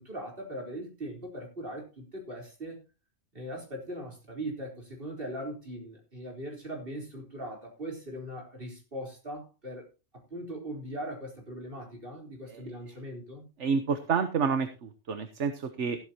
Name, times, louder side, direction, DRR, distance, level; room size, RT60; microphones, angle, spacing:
voice 1, 0.0-2.8 3.3-9.9 10.1-13.4, right 1 dB, 50° right, 4.2 m, -40 dB
voice 2, 13.6-16.0, right 6 dB, 70° right, 1.4 m, -29 dB
14.5 x 12.5 x 2.9 m
omnidirectional pair, 1.2 m